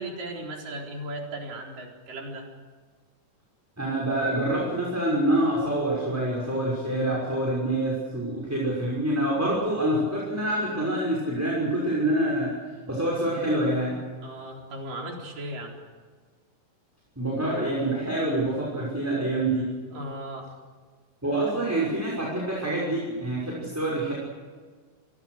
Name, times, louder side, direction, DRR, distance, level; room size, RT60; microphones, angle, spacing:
voice 1, 0.0-2.5 14.2-15.8 19.9-20.5, right 1 dB, 80° right, 0 dB, 5.9 m, -36 dB
voice 2, 3.8-12.5 12.8-14.0 17.2-19.7 21.2-24.1, right 1 dB, 5° right, -5 dB, 5.8 m, -26 dB
28.0 x 24.0 x 6.6 m, 1.5 s
omnidirectional pair, 3.8 m